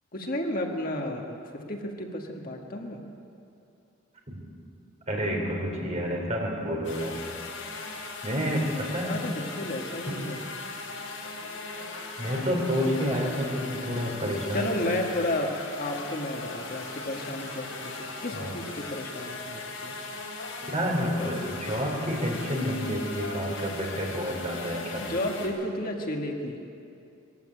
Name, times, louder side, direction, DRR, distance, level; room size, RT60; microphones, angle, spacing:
voice 1, 0.1-3.0 9.0-10.5 14.5-15.5 15.8-19.9 24.9-26.6, left 1 dB, 45° left, 2 dB, 1.8 m, -32 dB
voice 2, 5.1-7.1 8.2-9.2 12.2-14.7 18.0-18.1 18.3-18.6 20.6-25.0, equal, 35° right, -1 dB, 4.2 m, -29 dB
sound 1, 6.8-25.5, left 3 dB, 85° left, 6.2 m, -38 dB
21.5 x 15.0 x 9.1 m, 2.6 s
head